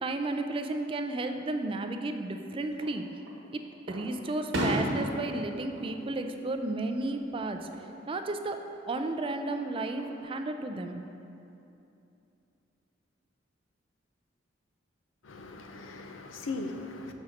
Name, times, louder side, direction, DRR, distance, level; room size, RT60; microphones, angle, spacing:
voice 1, 0.0-3.1 3.5-3.6 3.9-7.7 8.1-11.0, right 2 dB, 25° right, 6 dB, 0.3 m, -33 dB
Fireworks, 2.7-3.4 3.9-7.0 7.3-7.9 9.4-10.2, right 1 dB, 70° right, 1.3 m, -35 dB
voice 2, 15.2-17.1, left 3 dB, 85° left, 5 dB, 0.6 m, -39 dB
6.0 x 4.2 x 6.4 m, 2.8 s
head